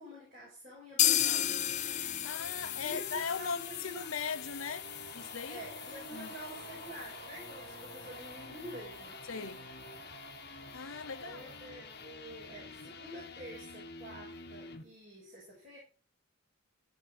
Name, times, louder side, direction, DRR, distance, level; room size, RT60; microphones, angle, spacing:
voice 1, 0.0-1.8 2.8-4.1 5.5-9.2 11.2-15.8, equal, 40° right, 6.4 m, -48 dB
sound 1, 0.9-14.8, left 4 dB, 50° left, 1.5 m, -49 dB
sound 2, 1.0-8.7 9.0-9.1 9.4-9.5 9.9-10.0, left 11 dB, 35° left, 0.4 m, -35 dB
voice 2, 2.2-5.6 6.1-6.3 9.3-9.7 10.7-11.4, left 6 dB, 85° left, 0.8 m, -39 dB
sound 3, 4.2-13.7, right 3 dB, 70° right, 2.0 m, -53 dB
14.5 x 5.2 x 5.0 m
head